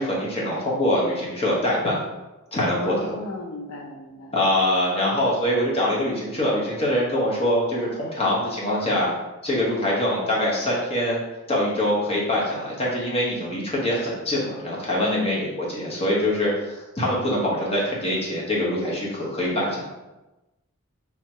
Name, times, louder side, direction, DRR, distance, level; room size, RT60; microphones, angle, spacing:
voice 1, 0.0-2.0 2.5-3.1 4.3-9.1 9.4-11.2 11.5-19.8, left 1 dB, 25° left, -5 dB, 1.1 m, -24 dB
voice 2, 2.7-4.4 5.0-5.3 15.0-15.5, left 2 dB, 75° left, 2 dB, 0.5 m, -33 dB
3.5 x 2.9 x 4.4 m, 1.0 s
head